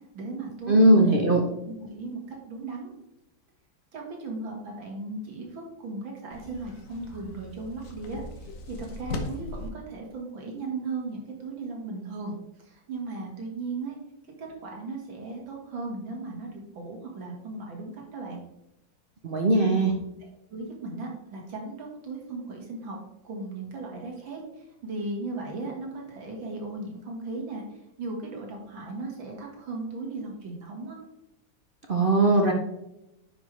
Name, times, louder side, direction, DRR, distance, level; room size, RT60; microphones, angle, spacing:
voice 1, 0.1-1.3 1.6-2.9 3.9-14.0 14.4-18.4 20.2-23.0 23.2-31.0, right 3 dB, 75° right, 0 dB, 2.4 m, -37 dB
voice 2, 0.7-1.4 19.2-19.9 31.9-32.5, right 1 dB, 55° right, 1 dB, 0.5 m, -19 dB
sound 1, 6.3-9.7, left 3 dB, 50° left, 1.1 m, -38 dB
10.0 x 5.3 x 3.2 m, 0.90 s
omnidirectional pair, 2.1 m